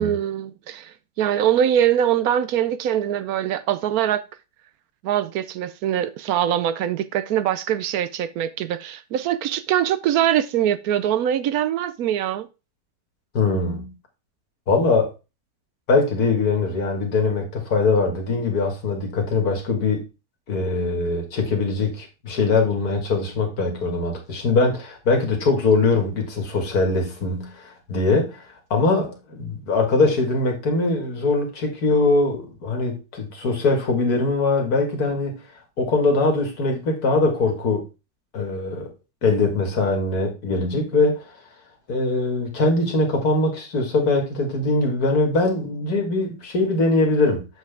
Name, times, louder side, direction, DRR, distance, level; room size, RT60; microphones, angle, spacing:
voice 1, 0.0-4.2 5.0-12.5, right 10 dB, 70° right, 1.0 m, -23 dB
voice 2, 13.3-13.9 14.7-15.1 15.9-20.0 20.5-28.5 28.7-35.4 35.8-37.9 38.3-38.9 39.2-41.3 41.9-47.5, left 3 dB, 65° left, 2.2 m, -22 dB
7.5 x 5.8 x 3.4 m
omnidirectional pair, 1.8 m